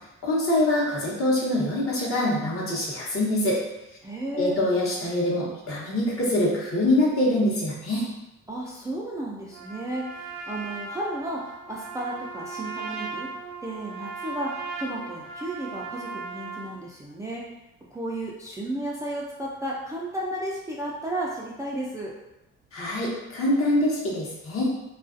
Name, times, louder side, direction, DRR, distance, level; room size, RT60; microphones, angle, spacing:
voice 1, 0.2-3.6 4.3-8.1 22.7-24.7, left 1 dB, 45° left, -5 dB, 0.9 m, -24 dB
voice 2, 4.0-4.6 8.5-13.3 13.6-17.4 17.9-22.1, right 1 dB, 10° right, -5 dB, 0.3 m, -33 dB
Trumpet, 9.5-16.8, right 4 dB, 85° right, 0.6 m, -37 dB
2.4 x 2.3 x 2.5 m, 0.95 s
cardioid pair, 90°, 30 cm